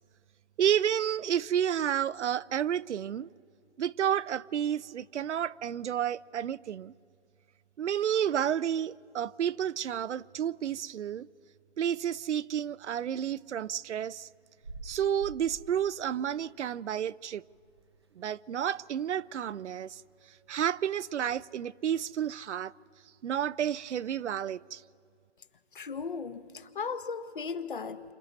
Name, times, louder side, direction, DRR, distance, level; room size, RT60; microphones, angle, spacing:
voice 1, 0.6-3.3 3.8-6.9 7.8-11.3 11.8-14.3 14.8-17.4 18.2-20.0 20.5-22.7 23.2-24.8, right 9 dB, 90° right, 0.6 m, -31 dB
sound 1, 13.0-18.2 18.6-18.7 19.0-20.4, right 3 dB, 25° right, 0.6 m, -49 dB
voice 2, 25.7-28.0, left 5 dB, 45° left, 1.0 m, -36 dB
29.0 x 26.5 x 4.1 m
hypercardioid pair, 180°, 34 cm